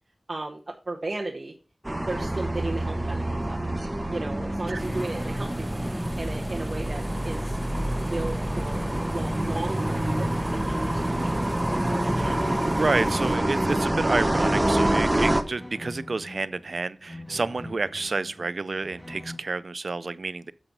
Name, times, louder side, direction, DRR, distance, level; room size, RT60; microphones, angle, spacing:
voice 1, 0.3-1.5 2.1-3.7 4.1-7.6 8.1-12.1, right 2 dB, 50° right, 1.0 m, -35 dB
sound 1, 1.8-15.4, right 1 dB, 20° right, 1.0 m, -27 dB
sound 2, 4.8-13.4, right 1 dB, 5° right, 2.2 m, -36 dB
sound 3, 11.9-19.4, left 1 dB, 15° left, 1.2 m, -45 dB
voice 2, 12.2-20.5, right 3 dB, 70° right, 0.5 m, -29 dB
7.4 x 5.8 x 5.3 m
wide cardioid pair, 60°, 0 cm